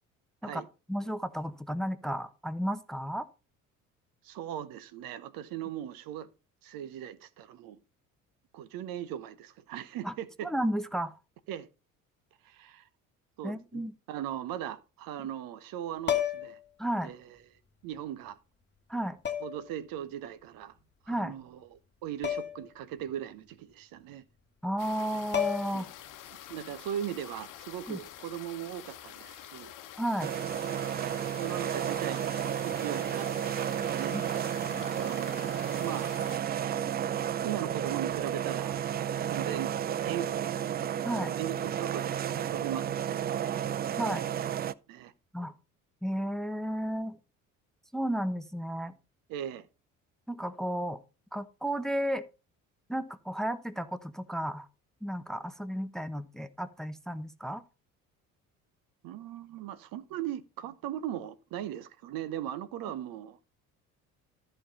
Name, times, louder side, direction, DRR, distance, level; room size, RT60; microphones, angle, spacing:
voice 1, 0.9-3.3 10.0-10.1 10.4-11.1 13.4-13.9 16.8-17.1 18.9-19.2 21.1-21.3 24.6-25.9 27.9-28.0 30.0-30.3 34.1-34.2 41.0-41.3 44.0-44.3 45.3-45.5 46.0-47.2 47.9-48.9 50.3-51.0 51.3-52.2 52.9-54.7 55.0-57.6, equal, ahead, 0.8 m, -33 dB
voice 2, 4.2-6.3 6.6-7.8 8.5-10.5 11.5-11.7 12.4-12.9 13.4-16.6 17.0-17.4 17.8-18.4 19.4-20.8 21.0-24.2 25.7-25.9 26.5-29.7 30.8-34.2 35.0-36.1 37.4-39.7 40.0-40.6 41.3-43.6 44.0-44.4 44.9-45.1 49.3-49.7 59.0-63.4, right 11 dB, 55° right, 0.9 m, -39 dB
sound 1, 16.0-16.6 18.0-18.1 19.2-19.7 22.2-22.7 23.0-23.1 24.9-25.0 25.3-25.9 27.9-28.1, left 9 dB, 25° left, 1.4 m, -31 dB
sound 2, 24.8-36.4, left 12 dB, 45° left, 1.1 m, -47 dB
sound 3, 30.2-44.7, right 9 dB, 25° right, 0.4 m, -32 dB
13.5 x 5.5 x 4.2 m
figure-of-eight pair, 55°, 42 cm